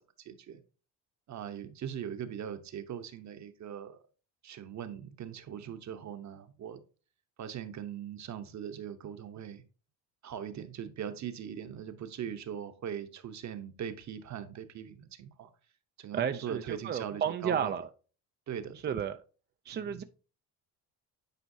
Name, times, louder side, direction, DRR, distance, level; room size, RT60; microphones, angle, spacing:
voice 1, 0.2-0.6 1.3-4.0 4.4-6.8 7.4-9.6 10.2-15.5 16.0-17.7 18.5-19.0 19.7-20.0, right 9 dB, 45° right, 0.9 m, -41 dB
voice 2, 16.1-17.9 18.8-19.2 19.7-20.0, right 8 dB, 30° right, 0.3 m, -32 dB
9.2 x 4.5 x 2.7 m
cardioid pair, 100°, 40 cm